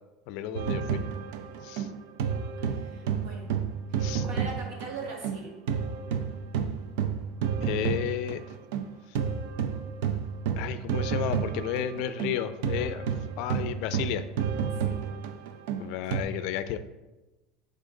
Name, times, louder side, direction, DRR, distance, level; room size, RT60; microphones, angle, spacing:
voice 1, 0.3-1.0 1.6-1.9 4.0-4.2 7.6-8.4 10.6-13.1 13.4-14.3 15.8-16.8, left 10 dB, 60° left, 12 dB, 0.4 m, -32 dB
sound 1, 0.5-5.4 5.7-16.2, right 7 dB, 80° right, 0.5 m, -30 dB
voice 2, 2.6-3.5 3.9-5.6 14.7-14.9 16.1-16.2, right 3 dB, 55° right, -1 dB, 1.9 m, -41 dB
8.9 x 3.8 x 3.8 m, 1.1 s
cardioid pair, 155°, 0 cm